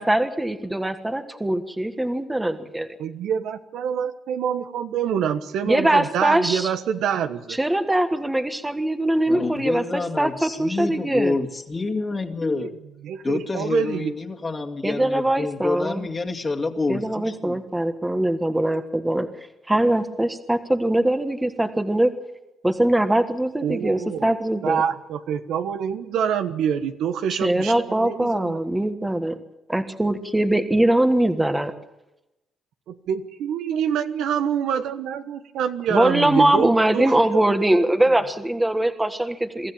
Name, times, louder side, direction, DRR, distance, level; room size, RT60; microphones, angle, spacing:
voice 1, 0.0-2.9 5.7-6.7 7.5-11.3 14.8-16.1 16.9-19.3 19.7-22.1 22.6-24.8 27.3-29.4 29.7-31.7 35.9-39.7, right 1 dB, 10° right, 8 dB, 1.5 m, -22 dB
voice 2, 3.0-7.6 13.0-14.1 23.6-24.3 24.6-28.6 32.9-37.2 37.7-37.9, right 8 dB, 80° right, 9 dB, 1.2 m, -26 dB
voice 3, 9.3-12.7 13.2-17.6, left 3 dB, 30° left, 2 dB, 2.1 m, -27 dB
23.5 x 13.5 x 8.8 m, 0.95 s
cardioid pair, 90°, 0 cm